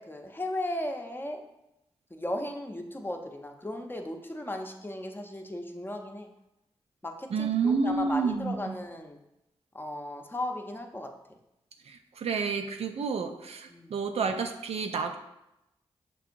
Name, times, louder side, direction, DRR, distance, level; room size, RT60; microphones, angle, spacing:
voice 1, 0.0-1.4 2.1-6.3 7.0-9.2 9.7-11.1 13.7-13.9, left 1 dB, 20° left, 3 dB, 0.6 m, -36 dB
voice 2, 7.3-8.8 11.9-15.2, right 5 dB, 75° right, 6 dB, 0.4 m, -29 dB
5.9 x 2.8 x 2.5 m, 0.87 s
cardioid pair, 40°, 11 cm